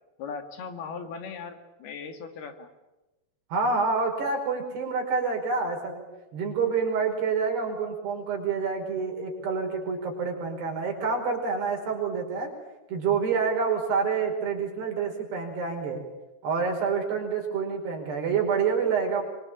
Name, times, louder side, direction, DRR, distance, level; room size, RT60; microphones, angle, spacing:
voice 1, 0.2-2.7, left 5 dB, 70° left, 7 dB, 4.1 m, -38 dB
voice 2, 3.5-6.0 6.3-12.5 12.9-16.0 16.4-19.2, right 5 dB, 80° right, 2 dB, 7.1 m, -27 dB
25.5 x 24.5 x 8.7 m, 1.0 s
omnidirectional pair, 4.7 m